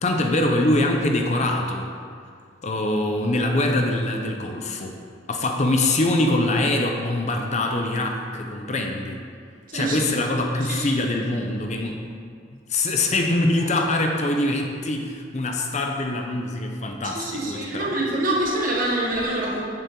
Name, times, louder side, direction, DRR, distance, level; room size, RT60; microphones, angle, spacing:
voice 1, 0.0-1.9 2.6-4.9 5.3-9.2 9.7-12.0 12.7-17.9, left 2 dB, 40° left, 2 dB, 0.7 m, -23 dB
voice 2, 17.0-19.6, right 1 dB, 45° right, -3 dB, 1.6 m, -25 dB
8.0 x 7.2 x 3.9 m, 2.1 s
head